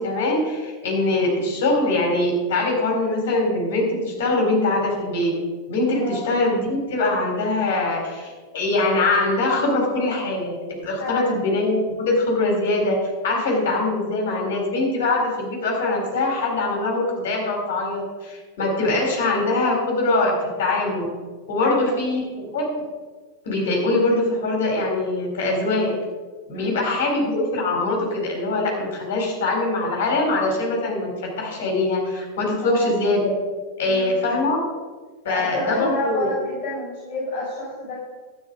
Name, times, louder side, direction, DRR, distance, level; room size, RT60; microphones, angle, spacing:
voice 1, 0.0-5.3 5.7-13.0 13.2-21.1 21.5-22.7 23.4-25.9 26.5-33.3 33.8-34.6 35.2-36.3, left 2 dB, 55° left, 0 dB, 4.1 m, -23 dB
voice 2, 11.0-11.4 21.6-22.0 26.5-26.8 32.6-32.9 33.8-34.4 35.3-38.0, left 2 dB, 35° left, -8 dB, 4.5 m, -29 dB
12.0 x 9.3 x 5.0 m, 1.3 s
figure-of-eight pair, 90°, 0 cm